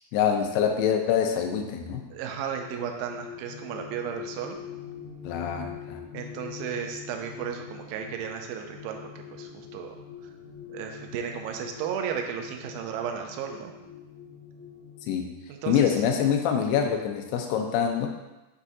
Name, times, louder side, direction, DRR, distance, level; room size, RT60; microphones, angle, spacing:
voice 1, 0.1-2.0 5.2-6.0 15.1-15.3 15.7-18.1, left 8 dB, 85° left, 4 dB, 2.6 m, -25 dB
voice 2, 2.1-4.6 6.1-10.0 10.7-13.7 15.5-16.0, right 8 dB, 80° right, 3 dB, 2.2 m, -34 dB
sound 1, 2.3-15.0, left 7 dB, 60° left, 2.9 m, -43 dB
6.9 x 5.2 x 2.7 m, 1.0 s
omnidirectional pair, 4.6 m